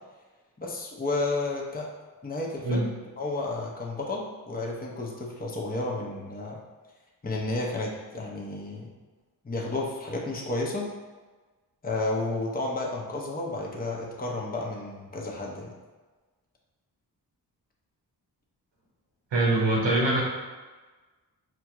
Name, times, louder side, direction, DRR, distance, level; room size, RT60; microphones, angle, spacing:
voice 1, 0.6-1.9 2.2-2.9 3.2-6.6 7.2-8.9 9.4-10.9 11.8-15.7, left 2 dB, 20° left, -2 dB, 0.7 m, -32 dB
voice 2, 19.3-20.2, right 2 dB, 80° right, -3 dB, 1.0 m, -23 dB
4.3 x 2.4 x 2.9 m, 1.3 s
cardioid pair, 40°, 43 cm